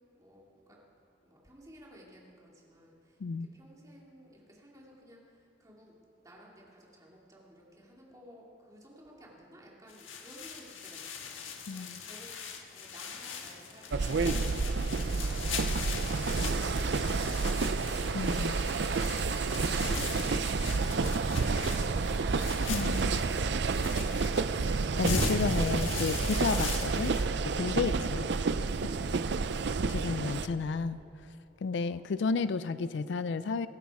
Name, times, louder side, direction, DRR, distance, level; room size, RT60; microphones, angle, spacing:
voice 1, 0.1-0.8 1.3-5.9 6.2-18.5 31.8-32.1, equal, 15° right, -3 dB, 2.4 m, -54 dB
sound 1, 9.9-27.3, left 4 dB, 80° left, 1.4 m, -39 dB
voice 2, 11.7-12.0 18.1-18.6 22.7-23.2 25.0-27.2 27.6-28.3 29.9-31.0 31.6-33.7, left 4 dB, 60° left, 14 dB, 0.4 m, -32 dB
sound 2, 13.9-30.5, right 4 dB, 55° right, 0.5 m, -30 dB
23.5 x 10.5 x 4.8 m, 2.7 s
head